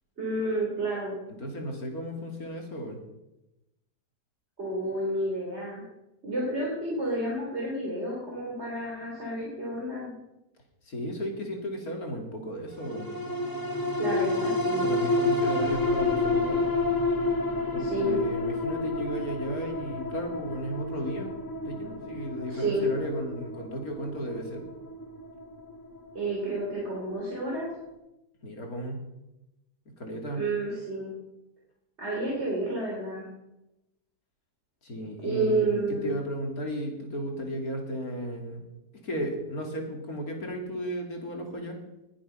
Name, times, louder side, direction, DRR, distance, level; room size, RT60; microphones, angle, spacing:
voice 1, 0.2-1.1 4.6-5.8 6.2-10.1 14.0-14.9 17.8-18.2 22.5-22.9 26.1-27.7 30.3-31.1 32.0-33.2 35.2-36.1, right 1 dB, 35° right, -4 dB, 3.5 m, -30 dB
voice 2, 1.4-3.0 10.9-13.1 14.7-16.6 17.7-21.3 21.6-24.6 28.4-29.0 30.0-30.4 34.8-38.6 39.0-41.8, equal, 55° left, 2 dB, 3.2 m, -34 dB
sound 1, 12.8-27.5 27.9-28.0, left 2 dB, 10° left, 1.5 m, -30 dB
20.5 x 7.8 x 5.7 m, 0.94 s
omnidirectional pair, 1.9 m